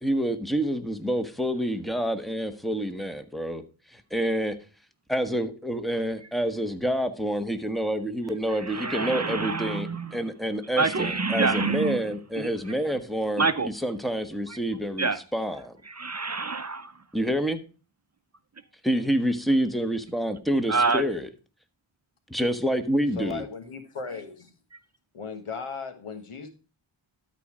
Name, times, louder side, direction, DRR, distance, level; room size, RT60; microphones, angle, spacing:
voice 1, 0.0-3.6 3.9-4.5 5.1-15.8 17.1-17.6 18.8-21.3 22.3-23.4, equal, ahead, 1.2 m, -28 dB
voice 2, 8.7-10.1 10.8-12.0 12.4-12.5 13.4-13.7 15.0-15.2 15.9-16.9 20.7-21.0, right 4 dB, 35° right, 0.7 m, -26 dB
voice 3, 23.1-24.5 25.1-26.5, left 5 dB, 85° left, 1.5 m, -36 dB
12.5 x 4.3 x 4.9 m
cardioid pair, 45°, 49 cm